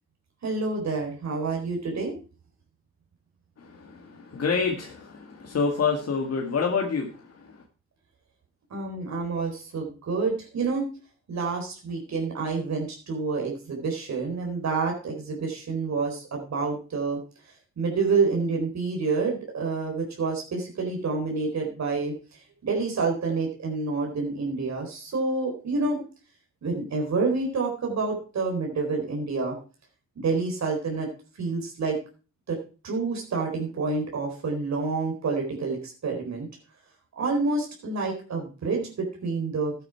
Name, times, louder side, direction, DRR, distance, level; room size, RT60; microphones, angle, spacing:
voice 1, 0.4-2.2 8.7-10.8 11.3-17.2 17.8-22.1 22.6-26.0 26.6-29.6 30.2-31.1 31.4-32.0 32.5-32.6 32.8-36.5 37.2-39.7, right 4 dB, 60° right, 1 dB, 4.2 m, -28 dB
voice 2, 3.6-7.6, left 5 dB, 50° left, 2 dB, 2.0 m, -28 dB
12.0 x 9.3 x 4.6 m, 0.36 s
cardioid pair, 75°, 31 cm